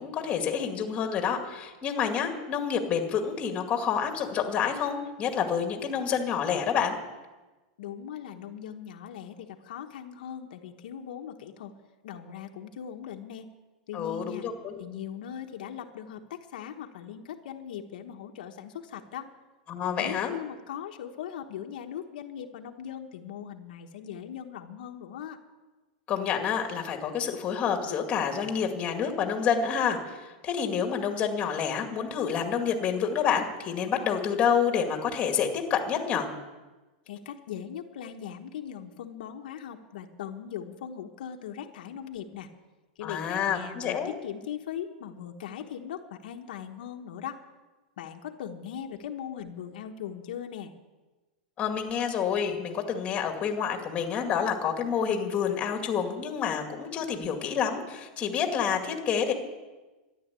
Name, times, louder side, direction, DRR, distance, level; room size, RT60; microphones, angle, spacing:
voice 1, 0.0-6.9 13.9-14.7 19.7-20.3 26.1-36.3 43.0-44.1 51.6-59.3, left 7 dB, 25° left, 4 dB, 2.2 m, -28 dB
voice 2, 7.8-11.7 12.0-13.5 13.9-14.4 14.8-19.3 19.8-25.4 37.1-42.5 43.0-47.4 48.0-50.7, left 9 dB, 75° left, 3 dB, 1.2 m, -39 dB
13.5 x 11.0 x 8.3 m, 1.2 s
supercardioid pair, 155°, 5 cm